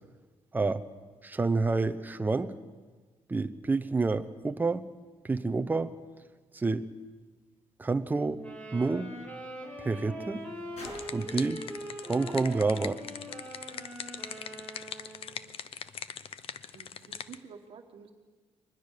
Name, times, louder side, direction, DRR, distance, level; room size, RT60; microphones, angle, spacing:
voice 1, 1.2-2.5 3.3-4.8 5.2-5.9 6.5-6.9 7.8-8.4 8.7-9.1 9.8-10.4 11.1-11.6 12.1-13.0, right 3 dB, 15° right, 10 dB, 0.8 m, -28 dB
sound 1, 7.2-13.7 14.6-14.7, left 1 dB, 75° left, 7.0 m, -54 dB
sound 2, 8.4-15.5, equal, 10° left, 4.9 m, -42 dB
sound 3, 10.5-17.4, left 8 dB, 55° left, 0.8 m, -42 dB
voice 2, 15.5-16.1 16.7-18.1, right 6 dB, 55° right, 3 dB, 1.7 m, -51 dB
23.5 x 20.5 x 6.7 m, 1.4 s
cardioid pair, 160°, 11 cm